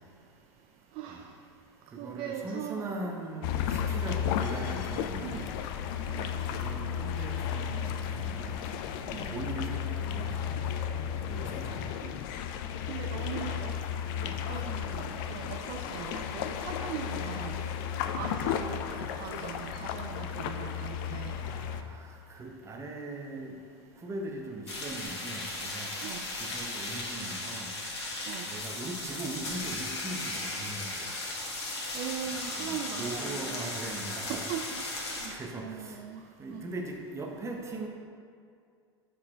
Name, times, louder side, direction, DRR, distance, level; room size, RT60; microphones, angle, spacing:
voice 1, 1.0-1.3 2.0-3.0 5.2-5.5 6.1-6.4 9.1-9.4 12.0-12.1 12.9-13.8 14.3-15.0 15.3-17.6 18.1-21.4 26.0-26.2 28.3-28.5 31.9-33.9 34.3-36.2 36.5-36.7, right 9 dB, 40° right, 4 dB, 0.4 m, -40 dB
voice 2, 1.9-5.5 6.5-8.6 9.1-10.4 11.3-11.9 13.1-13.5 14.2-14.3 18.1-18.3 21.4-23.6 24.0-25.9 26.4-27.7 28.5-31.1 32.2-34.4 35.3-36.0 36.4-37.9, right 2 dB, 20° right, 2 dB, 0.9 m, -40 dB
sound 1, 3.4-21.8, left 8 dB, 50° left, 0.4 m, -34 dB
sound 2, 24.7-35.3, left 2 dB, 70° left, 1.4 m, -36 dB
7.5 x 4.3 x 4.4 m, 2.3 s
figure-of-eight pair, 90°, 15 cm